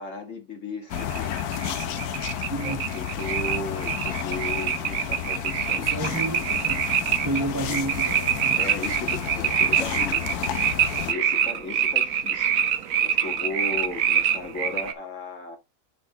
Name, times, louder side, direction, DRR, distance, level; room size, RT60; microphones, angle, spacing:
voice 1, 0.0-1.4 2.6-6.2 7.6-7.8 8.6-10.5 11.0-12.5 13.0-15.6, left 3 dB, 50° left, 2.7 m, -36 dB
sound 1, 0.9-11.1, left 9 dB, 70° left, 1.3 m, -32 dB
sound 2, 1.0-14.9, right 8 dB, 60° right, 1.3 m, -25 dB
voice 2, 2.5-3.0 5.7-8.6, right 2 dB, 30° right, 0.3 m, -31 dB
6.2 x 5.1 x 4.5 m
omnidirectional pair, 1.7 m